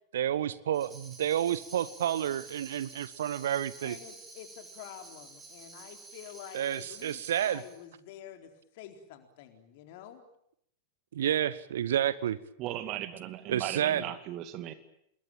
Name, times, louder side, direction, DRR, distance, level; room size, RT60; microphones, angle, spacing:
voice 1, 0.1-4.0 6.5-7.6 11.1-12.4 13.5-14.0, right 10 dB, 60° right, 19 dB, 1.0 m, -30 dB
Tambourine, 0.7-7.8, right 3 dB, 15° right, 7.4 m, -50 dB
voice 2, 3.8-10.3, left 10 dB, 50° left, 6 dB, 4.1 m, -48 dB
voice 3, 12.6-14.7, right 12 dB, 40° right, 11 dB, 2.3 m, -37 dB
27.5 x 21.5 x 9.1 m, 0.73 s
figure-of-eight pair, 90°, 0 cm